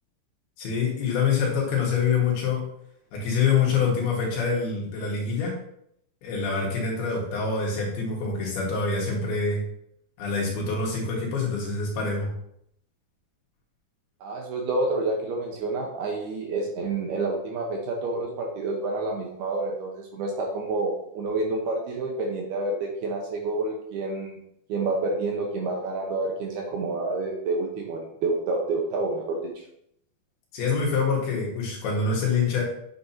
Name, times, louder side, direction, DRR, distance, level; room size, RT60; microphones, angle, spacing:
voice 1, 0.6-2.7 3.1-5.6 6.2-9.6 10.2-12.3 30.5-32.6, left 5 dB, 65° left, -2 dB, 3.3 m, -25 dB
voice 2, 14.2-24.4 24.7-29.6, right 2 dB, 70° right, 0 dB, 2.6 m, -28 dB
9.5 x 7.6 x 2.8 m, 0.74 s
omnidirectional pair, 5.3 m